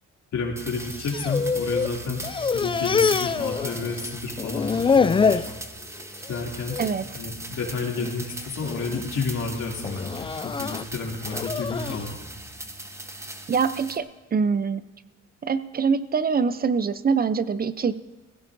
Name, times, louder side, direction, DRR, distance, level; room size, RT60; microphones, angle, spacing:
voice 1, 0.3-2.3 2.5-5.4 6.3-6.8 7.1-12.1, left 4 dB, 70° left, -1 dB, 2.8 m, -30 dB
sound 1, 0.6-14.0, right 1 dB, 10° right, 1.0 m, -39 dB
sound 2, 0.8-1.9 2.2-4.1 4.4-5.5 6.0-6.4 6.7-6.9 7.7-8.1 8.6-9.0 9.8-12.0, left 5 dB, 20° left, 0.3 m, -25 dB
voice 2, 13.5-14.9 15.4-17.9, right 5 dB, 30° right, 14 dB, 0.6 m, -24 dB
21.0 x 16.0 x 2.6 m, 1.2 s
cardioid pair, 90°, 30 cm